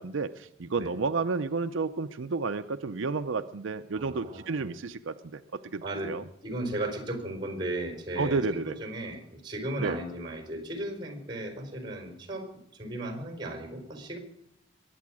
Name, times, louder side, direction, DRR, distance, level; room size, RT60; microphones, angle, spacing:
voice 1, 0.0-6.2 8.2-8.8 9.8-10.0, right 4 dB, 90° right, 9 dB, 0.6 m, -31 dB
voice 2, 4.0-4.7 5.8-6.1 6.4-14.2, right 1 dB, 25° right, 5 dB, 4.3 m, -36 dB
22.0 x 8.6 x 6.2 m, 0.76 s
head